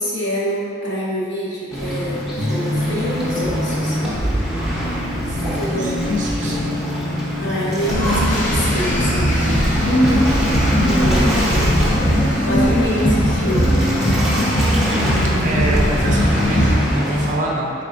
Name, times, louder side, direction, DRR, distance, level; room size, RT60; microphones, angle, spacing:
voice 1, 0.0-4.0 5.5-6.0 7.4-9.4 9.7-11.8 12.4-13.8, equal, 65° left, -8 dB, 1.0 m, -26 dB
Waves surf, 1.7-17.3, equal, ahead, 0.8 m, -25 dB
sound 1, 2.4-10.4, left 1 dB, 85° left, 0.5 m, -28 dB
voice 2, 5.3-6.6 15.4-17.7, right 1 dB, 40° right, -2 dB, 0.5 m, -26 dB
sound 2, 7.9-16.8, equal, 40° left, 0.7 m, -18 dB
4.5 x 3.6 x 2.5 m, 2.7 s
head